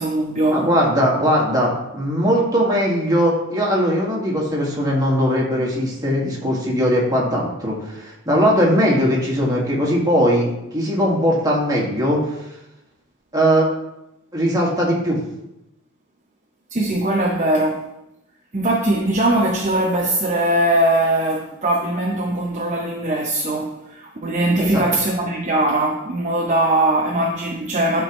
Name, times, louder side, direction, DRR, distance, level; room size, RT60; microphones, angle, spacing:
voice 1, 0.0-0.7 16.7-17.9 18.5-28.0, right 1 dB, 35° right, 0.7 m, -20 dB
voice 2, 0.5-12.2 13.3-13.7 14.3-15.2 24.6-24.8, equal, 20° right, 1.9 m, -19 dB
11.5 x 4.6 x 3.1 m
head